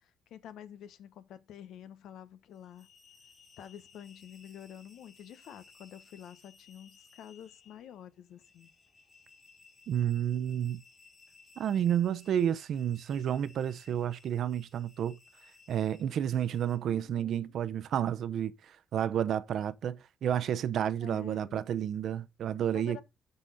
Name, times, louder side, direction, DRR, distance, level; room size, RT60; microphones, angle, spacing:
voice 1, 0.0-2.9 3.6-8.7 16.8-17.6 21.0-21.6 22.7-23.0, left 10 dB, 80° left, 1.0 m, -49 dB
sound 1, 2.5-16.8, left 4 dB, 35° left, 3.6 m, -60 dB
voice 2, 9.9-10.8 11.6-15.2 15.7-23.0, right 9 dB, 70° right, 0.7 m, -31 dB
12.0 x 4.1 x 5.4 m
cardioid pair, 90°, 0 cm